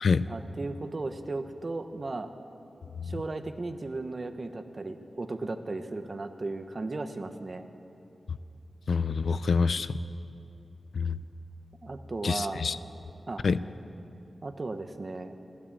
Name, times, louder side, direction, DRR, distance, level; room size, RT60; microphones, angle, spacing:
voice 1, 0.3-2.3 3.0-7.7 11.8-12.6 13.3-13.4 14.4-15.3, right 2 dB, 40° right, 8 dB, 0.9 m, -36 dB
voice 2, 8.9-10.0 10.9-11.2 12.2-12.8 13.4-13.6, left 5 dB, 70° left, 15 dB, 0.4 m, -26 dB
16.0 x 12.5 x 7.4 m, 2.7 s
wide cardioid pair, 90°, 0 cm